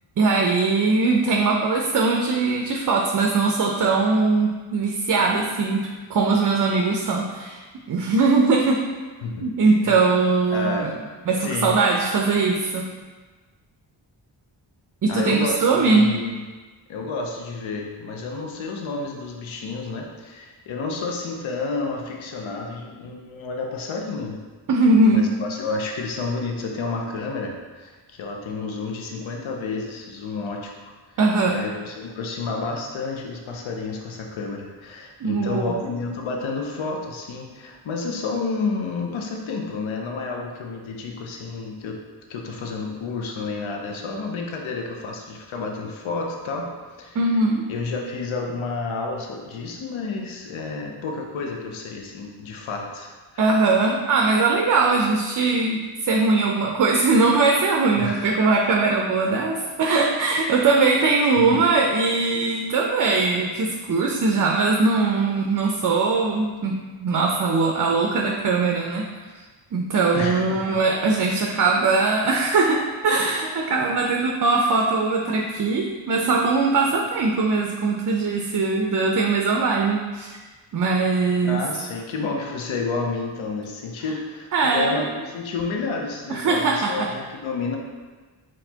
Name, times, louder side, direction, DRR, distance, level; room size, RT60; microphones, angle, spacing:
voice 1, 0.2-8.8 9.4-10.9 11.3-12.9 15.0-16.1 24.7-25.3 31.2-31.7 35.2-35.7 47.2-47.6 53.4-66.7 67.0-69.1 69.7-80.4 80.7-81.6 84.5-85.0 86.3-87.1, right 3 dB, 45° right, 1 dB, 0.5 m, -21 dB
voice 2, 10.5-10.9 11.4-11.8 15.1-16.4 16.9-24.4 25.1-31.2 31.4-42.0 42.3-47.2 47.7-53.4 58.0-58.3 61.5-61.6 70.1-70.8 81.4-87.8, left 3 dB, 75° left, 1 dB, 0.7 m, -30 dB
4.1 x 3.1 x 2.8 m, 1.4 s
cardioid pair, 50°, 48 cm